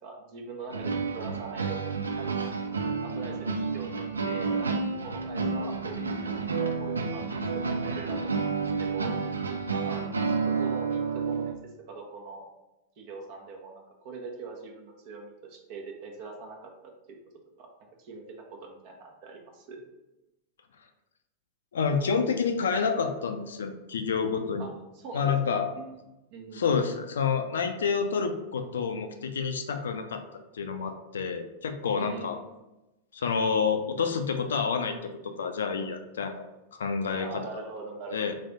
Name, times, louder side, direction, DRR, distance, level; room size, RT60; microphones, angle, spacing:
voice 1, 0.0-2.5 3.0-8.5 8.8-9.1 9.7-10.0 10.4-11.6 11.9-12.4 13.0-17.2 17.6-17.7 18.0-18.2 18.5-19.8 24.6-26.0 26.3-26.8 32.0-32.5 37.2-38.3, right 4 dB, 45° right, 1 dB, 0.9 m, -43 dB
sound 1, 0.7-11.5, right 4 dB, 75° right, 0.4 m, -30 dB
voice 2, 21.7-24.7 25.1-25.6 26.5-30.2 30.5-32.4 33.1-35.1 35.4-36.4 36.7-37.4 38.1-38.3, left 5 dB, 65° left, 7 dB, 0.4 m, -28 dB
3.5 x 3.3 x 4.0 m, 0.97 s
figure-of-eight pair, 90°, 0 cm